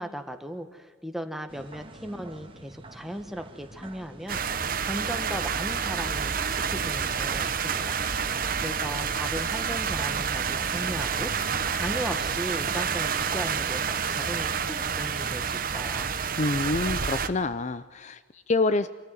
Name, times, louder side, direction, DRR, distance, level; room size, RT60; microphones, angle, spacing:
voice 1, 0.0-8.0 8.6-11.3 11.7-13.8 14.1-16.1, equal, ahead, 7 dB, 1.6 m, -37 dB
sound 1, 1.5-14.7, right 2 dB, 30° right, 1.8 m, -45 dB
sound 2, 4.3-17.3, right 6 dB, 50° right, 1.2 m, -29 dB
voice 2, 16.4-18.9, left 3 dB, 40° left, 14 dB, 0.6 m, -27 dB
26.0 x 14.5 x 9.4 m, 1.5 s
head